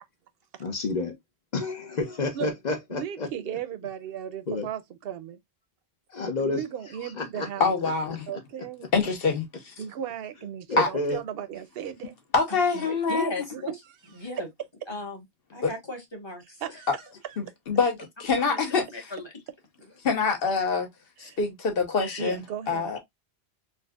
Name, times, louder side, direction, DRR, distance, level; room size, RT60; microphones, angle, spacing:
voice 1, 0.6-1.2 1.5-3.3 4.5-4.7 6.1-6.6 7.2-7.5 10.7-11.2, left 2 dB, 45° left, 0.7 m, -29 dB
voice 2, 2.9-5.4 6.4-7.7 8.3-8.9 9.8-12.1 12.9-13.0 13.5-13.6 14.2-14.3 16.6-17.0 17.3-17.4 21.2-21.4 22.2-23.0, right 9 dB, 65° right, 0.7 m, -36 dB
voice 3, 7.6-8.3 8.9-9.7 10.8-10.9 12.3-13.3 15.6-15.7 17.4-18.8 20.0-20.9 21.2-23.0, left 4 dB, 60° left, 1.1 m, -25 dB
voice 4, 12.5-13.7 14.1-14.5 14.9-15.2 15.5-16.8 18.5-19.3, left 2 dB, 25° left, 1.1 m, -36 dB
4.1 x 2.3 x 2.2 m
omnidirectional pair, 1.1 m